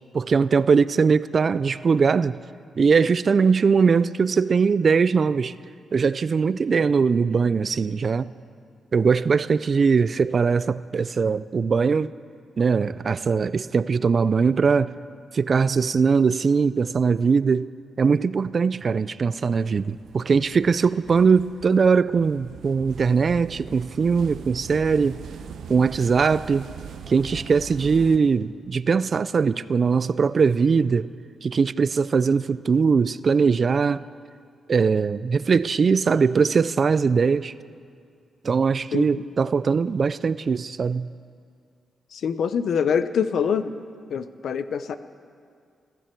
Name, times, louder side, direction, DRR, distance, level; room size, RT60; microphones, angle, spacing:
voice 1, 0.1-2.4 2.8-5.5 5.9-8.3 8.9-12.1 12.6-14.9 15.3-17.7 18.0-25.2 25.7-26.7 27.1-31.1 31.4-34.0 34.7-37.5 38.4-41.1, right 5 dB, 45° right, 0.3 m, -21 dB
sound 1, 19.4-28.2, right 7 dB, 80° right, 0.8 m, -41 dB
voice 2, 38.9-39.2 42.1-43.7 44.1-45.0, left 7 dB, 70° left, 0.6 m, -25 dB
21.5 x 13.5 x 4.5 m
cardioid pair, 105°, 0 cm